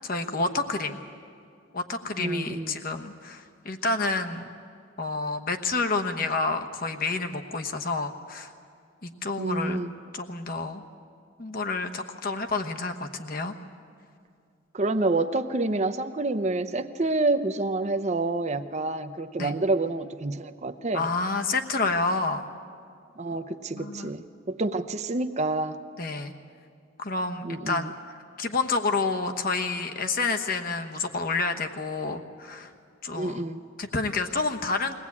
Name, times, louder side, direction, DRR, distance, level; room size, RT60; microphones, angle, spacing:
voice 1, 0.0-1.0 1.7-4.4 5.0-8.5 9.0-9.8 10.1-10.8 11.4-13.5 19.4-19.6 20.9-22.4 23.7-24.1 26.0-26.3 27.0-32.7 33.0-33.4 33.8-34.9, left 3 dB, 45° left, 6 dB, 1.1 m, -29 dB
voice 2, 2.2-2.8 9.4-9.9 14.7-21.0 23.2-25.8 27.4-27.9 33.2-33.6, right 2 dB, 35° right, 8 dB, 0.7 m, -28 dB
22.0 x 18.0 x 8.5 m, 2.3 s
head